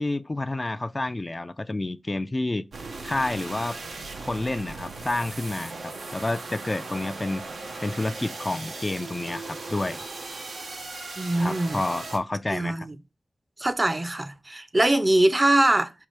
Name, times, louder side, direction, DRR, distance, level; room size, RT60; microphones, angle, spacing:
voice 1, 0.0-2.6 3.0-3.8 4.2-7.5 7.8-10.0 11.4-12.9, left 2 dB, 35° left, 0.3 m, -29 dB
sound 1, 2.7-12.2, right 3 dB, 90° right, 0.7 m, -38 dB
voice 2, 11.2-11.8 12.5-13.0 13.6-15.9, right 1 dB, 35° right, 0.6 m, -22 dB
4.6 x 2.4 x 4.4 m
cardioid pair, 40°, 0 cm